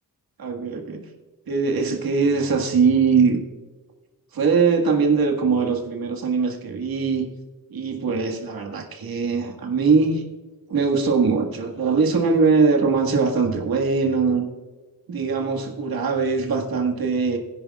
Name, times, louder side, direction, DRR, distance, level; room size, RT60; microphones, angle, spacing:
voice 1, 0.4-1.0 1.5-3.4 4.3-7.3 7.7-10.2 10.7-14.4 15.1-17.4, right 5 dB, 80° right, 2 dB, 1.8 m, -21 dB
20.5 x 10.0 x 2.4 m, 1.3 s
wide cardioid pair, 125°, 35 cm